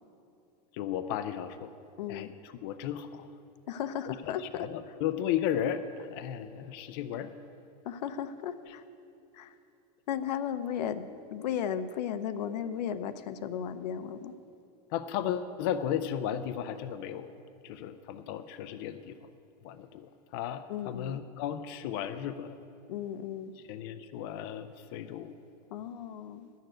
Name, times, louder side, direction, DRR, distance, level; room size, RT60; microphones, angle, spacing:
voice 1, 0.7-1.7 2.1-2.3 2.6-3.3 4.5-7.3 14.9-17.3 17.6-19.2 19.6-22.6 23.7-25.3, left 10 dB, 35° left, 9 dB, 0.4 m, -34 dB
voice 2, 2.0-2.3 3.7-4.7 7.8-8.8 9.3-9.5 10.1-11.1 11.3-14.3 20.7-21.2 22.9-23.5 25.7-26.5, left 9 dB, 85° left, 10 dB, 0.7 m, -35 dB
11.5 x 6.6 x 9.1 m, 2.7 s
supercardioid pair, 175°, 21 cm